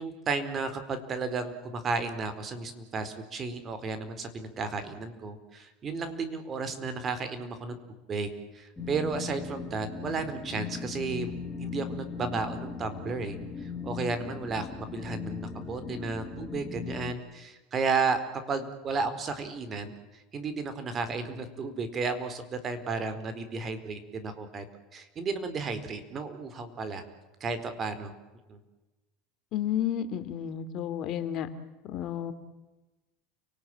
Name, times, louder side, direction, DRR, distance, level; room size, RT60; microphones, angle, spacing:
voice 1, 0.0-7.8 8.1-11.3 11.6-18.2 18.5-24.6 24.9-27.0 27.4-28.1 28.5-28.6, right 4 dB, 35° right, 10 dB, 4.4 m, -33 dB
sound 1, 8.8-17.1, left 5 dB, 15° left, 3.3 m, -38 dB
voice 2, 29.5-31.5 31.8-32.3, left 10 dB, 50° left, 10 dB, 2.8 m, -31 dB
30.0 x 19.0 x 9.1 m, 1.1 s
supercardioid pair, 110°, 0 cm